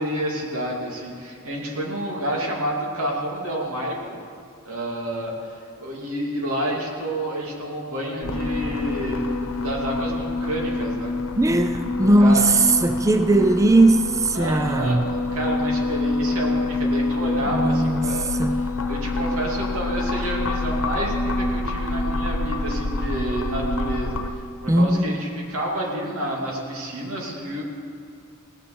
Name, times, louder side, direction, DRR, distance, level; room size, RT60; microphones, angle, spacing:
voice 1, 0.0-4.2 4.6-9.3 9.6-11.1 12.2-12.5 14.3-24.2 24.6-27.6, right 1 dB, 90° right, -2 dB, 2.6 m, -29 dB
sound 1, 8.2-24.3, left 2 dB, 75° left, 1.0 m, -26 dB
voice 2, 11.4-15.1 17.5-18.5 24.7-25.1, right 2 dB, 15° right, 8 dB, 0.4 m, -19 dB
18.0 x 7.5 x 7.0 m, 2.5 s
head